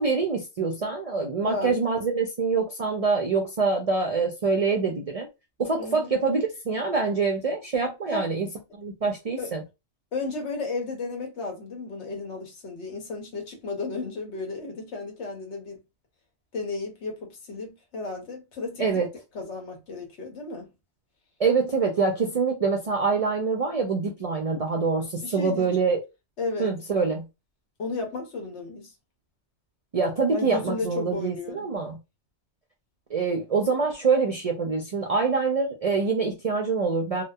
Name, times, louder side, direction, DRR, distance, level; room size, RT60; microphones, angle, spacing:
voice 1, 0.0-5.3 5.6-8.5 8.7-9.6 18.8-19.1 21.4-26.0 26.6-27.3 29.9-32.0 33.1-37.2, right 4 dB, 50° right, 0.4 m, -25 dB
voice 2, 1.4-1.8 5.8-6.1 8.1-8.3 9.4-9.5 10.1-15.8 16.5-18.9 19.3-20.7 25.2-25.7 26.4-26.7 27.8-28.9 30.3-31.7, left 3 dB, 75° left, 1.2 m, -33 dB
2.7 x 2.1 x 2.2 m
omnidirectional pair, 1.2 m